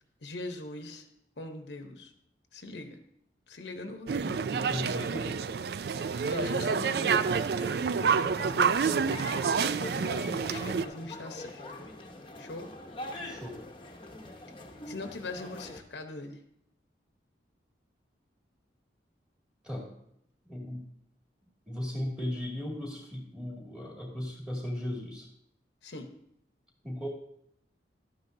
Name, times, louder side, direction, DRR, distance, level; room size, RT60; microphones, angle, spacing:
voice 1, 0.2-1.0 1.4-2.1 2.5-3.0 3.5-4.2 6.0-7.5 8.0-9.2 9.6-11.6 12.4-12.7 14.9-16.4 25.8-26.1, left 2 dB, 75° left, 5 dB, 1.0 m, -41 dB
sound 1, 4.1-10.9, right 6 dB, 60° right, 0.3 m, -28 dB
voice 2, 4.2-5.5 13.2-13.6 19.6-19.9 20.5-20.9 21.7-25.3 26.8-27.1, left 1 dB, 5° right, -3 dB, 2.2 m, -37 dB
sound 2, 5.9-15.8, left 1 dB, 30° left, 1.0 m, -44 dB
12.5 x 9.4 x 2.7 m, 0.75 s
head